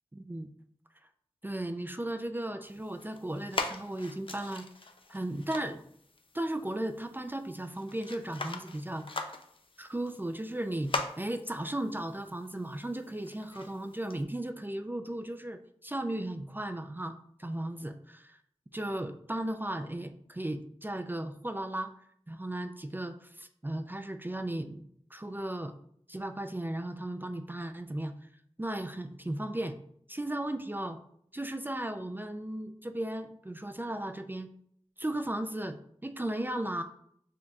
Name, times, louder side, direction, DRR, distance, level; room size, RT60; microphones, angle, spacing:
voice 1, 0.1-0.5 1.4-4.7 5.1-5.8 6.3-9.3 9.8-18.4 18.7-21.9 22.3-25.7 26.1-28.1 28.6-29.8 30.1-31.0 31.3-34.5 35.0-36.8, right 1 dB, 15° right, 7 dB, 0.4 m, -36 dB
sound 1, 2.6-14.2, left 3 dB, 50° left, 0.5 m, -42 dB
7.2 x 2.8 x 2.3 m, 0.67 s
wide cardioid pair, 55°, 11 cm